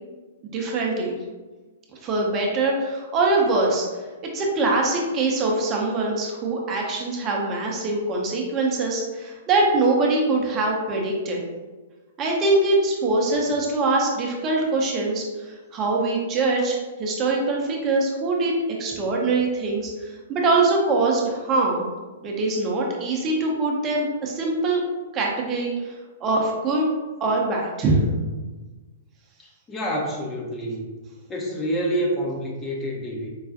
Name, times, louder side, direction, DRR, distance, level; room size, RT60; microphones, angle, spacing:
voice 1, 0.4-1.1 2.0-3.9 4.3-11.4 12.2-15.3 15.7-18.5 18.8-21.9 22.2-24.8 25.1-25.9 26.2-26.8 27.2-28.0, right 3 dB, 25° right, -1 dB, 0.6 m, -23 dB
voice 2, 29.4-30.9 31.3-33.3, equal, 15° left, -2 dB, 0.6 m, -28 dB
4.6 x 2.3 x 2.6 m, 1.3 s
figure-of-eight pair, 110°, 0 cm